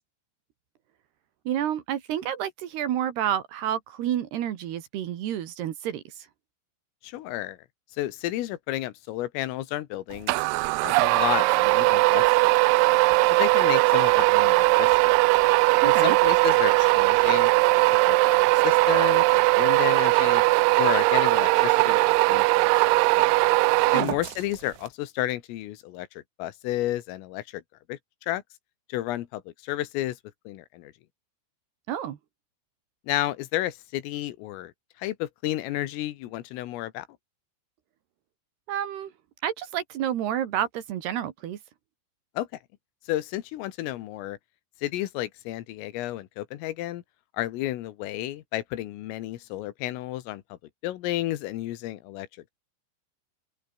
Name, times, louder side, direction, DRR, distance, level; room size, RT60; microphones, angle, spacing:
voice 1, 1.5-6.3 15.8-16.2 23.9-24.1 31.9-32.2 38.7-39.1 39.4-41.6, right 10 dB, 65° right, 3.3 m, -29 dB
voice 2, 7.0-7.6 8.0-10.4 10.8-12.5 13.4-15.1 15.8-17.5 18.1-20.4 20.8-23.3 23.9-27.6 27.9-28.0 28.3-28.4 28.9-30.2 30.5-30.9 33.1-34.7 35.0-37.1 42.4-42.5 43.1-44.4 44.8-47.0 47.3-50.6 50.8-52.3, left 15 dB, 85° left, 4.1 m, -32 dB
sound 1, 10.3-24.6, right 25 dB, 85° right, 2.6 m, -20 dB
omnidirectional pair, 5.8 m